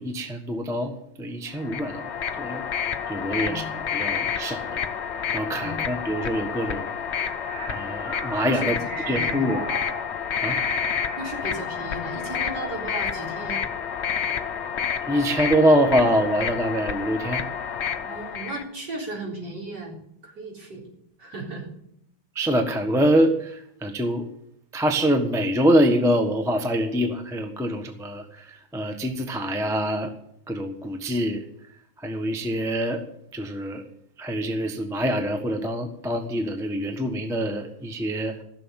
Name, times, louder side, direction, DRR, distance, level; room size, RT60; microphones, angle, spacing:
voice 1, 0.0-2.1 2.4-2.6 3.1-3.6 3.9-4.8 5.3-6.9 7.7-8.8 9.1-9.6 10.4-10.6 15.0-17.4 22.3-24.3 24.7-30.1 30.5-31.4 32.0-33.0 33.3-33.8 34.2-38.4, equal, ahead, 5 dB, 1.0 m, -24 dB
sound 1, 1.6-18.6, left 7 dB, 50° left, 0.8 m, -29 dB
voice 2, 3.3-3.7 5.5-5.8 8.4-8.7 9.1-9.5 11.2-13.6 18.0-20.0 20.2-20.9 21.2-21.7, right 2 dB, 60° right, -2 dB, 4.4 m, -36 dB
sound 2, 7.2-11.6 12.0-12.7, right 2 dB, 35° right, 4.8 m, -37 dB
15.5 x 6.9 x 8.8 m, 0.74 s
omnidirectional pair, 2.1 m